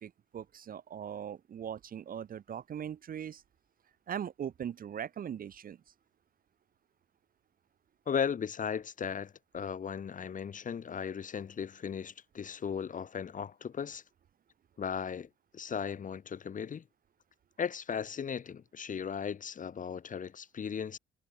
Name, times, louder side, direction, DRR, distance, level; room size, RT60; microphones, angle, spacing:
voice 1, 0.0-3.4 4.1-5.8, right 9 dB, 45° right, 0.7 m, -40 dB
voice 2, 8.1-14.0 14.8-16.8 17.6-21.0, left 7 dB, 40° left, 1.0 m, -36 dB
cardioid pair, 90°, 20 cm